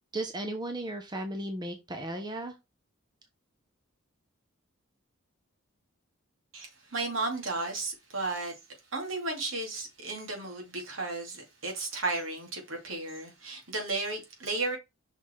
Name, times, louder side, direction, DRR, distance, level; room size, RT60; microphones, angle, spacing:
voice 1, 0.1-2.5, right 1 dB, 20° right, 0.8 m, -35 dB
voice 2, 6.5-8.5 8.9-14.8, right 3 dB, 70° right, 2.7 m, -34 dB
5.8 x 4.1 x 4.6 m
head